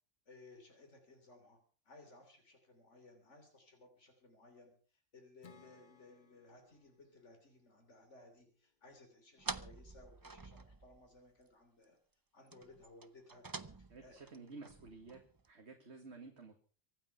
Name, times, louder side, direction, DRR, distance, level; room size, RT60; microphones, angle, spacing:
voice 1, 0.3-1.6 1.9-12.0 12.3-13.5 13.7-14.2, left 2 dB, 70° left, 4 dB, 3.6 m, -60 dB
Acoustic guitar / Strum, 5.4-8.9, left 6 dB, 40° left, 1.0 m, -65 dB
sound 1, 9.4-11.2 11.5-11.6 11.8-11.9 12.5-15.5, right 4 dB, 25° right, 0.5 m, -48 dB
voice 2, 13.9-15.2 15.5-16.6, right 3 dB, 60° right, 3 dB, 2.2 m, -52 dB
24.0 x 9.0 x 5.8 m, 0.41 s
omnidirectional pair, 1.3 m